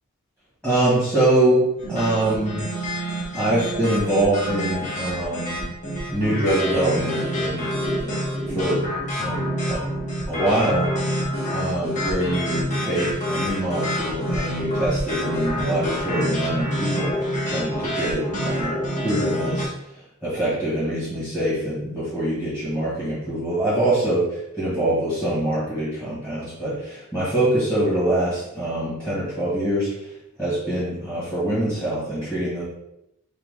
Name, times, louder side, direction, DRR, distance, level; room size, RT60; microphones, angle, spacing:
voice 1, 0.6-2.6 3.3-5.7 6.1-7.7 8.0-8.1 8.5-8.9 9.2-9.8 10.3-11.2 11.5-18.8 19.0-19.7 20.2-29.9 30.4-32.6, right 1 dB, 5° left, -11 dB, 1.6 m, -24 dB
sound 1, 1.8-19.6, equal, 35° left, 1.3 m, -27 dB
4.9 x 2.9 x 3.7 m, 0.84 s
head